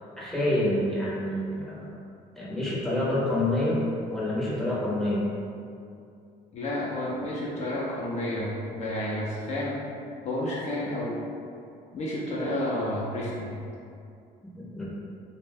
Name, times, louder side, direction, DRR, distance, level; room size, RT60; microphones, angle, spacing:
voice 1, 0.2-1.9 2.3-3.8 4.1-5.2 14.8-14.9, left 1 dB, ahead, -8 dB, 0.7 m, -27 dB
voice 2, 6.5-9.8 10.2-11.2 11.9-13.6, left 1 dB, 40° left, -6 dB, 0.4 m, -30 dB
2.4 x 2.1 x 3.4 m, 2.5 s
cardioid pair, 110°, 17 cm